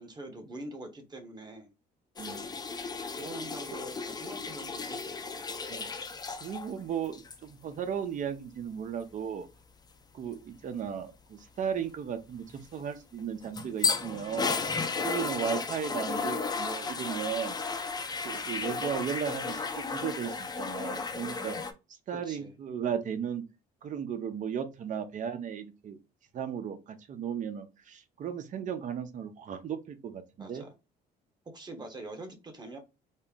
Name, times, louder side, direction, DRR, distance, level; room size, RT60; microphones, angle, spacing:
voice 1, 0.0-1.7 3.2-5.4 22.2-22.5 30.4-30.7 31.5-32.8, right 2 dB, 25° right, 1.2 m, -44 dB
sound 1, 2.2-6.7 7.0-7.4 13.2-21.7, left 4 dB, 25° left, 0.6 m, -34 dB
voice 2, 2.2-2.5 3.7-3.8 5.7-5.9 6.4-9.5 10.1-14.6 15.0-17.6 18.2-21.6 22.1-23.4 23.8-26.0 26.3-30.7, right 8 dB, 50° right, 0.8 m, -35 dB
4.3 x 2.1 x 3.6 m
cardioid pair, 110°, 17 cm